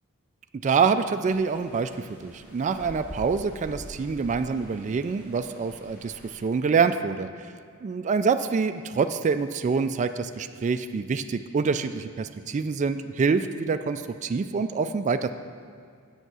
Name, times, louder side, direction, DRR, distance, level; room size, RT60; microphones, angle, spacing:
voice 1, 0.6-7.3 7.8-15.3, right 5 dB, 35° right, 8 dB, 0.3 m, -26 dB
sound 1, 1.2-6.4, equal, 5° right, 2.8 m, -46 dB
8.0 x 7.2 x 6.2 m, 2.2 s
head